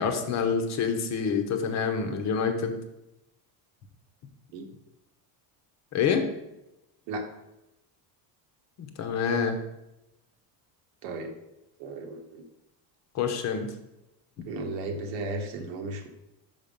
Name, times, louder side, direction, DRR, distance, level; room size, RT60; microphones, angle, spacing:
voice 1, 0.0-2.8 5.9-6.3 8.8-9.6 13.1-13.7, left 6 dB, 40° left, 6 dB, 0.9 m, -27 dB
voice 2, 11.8-12.4 14.4-16.1, right 2 dB, 85° right, 4 dB, 1.3 m, -34 dB
5.8 x 5.8 x 5.2 m, 0.92 s
cardioid pair, 165°, 42 cm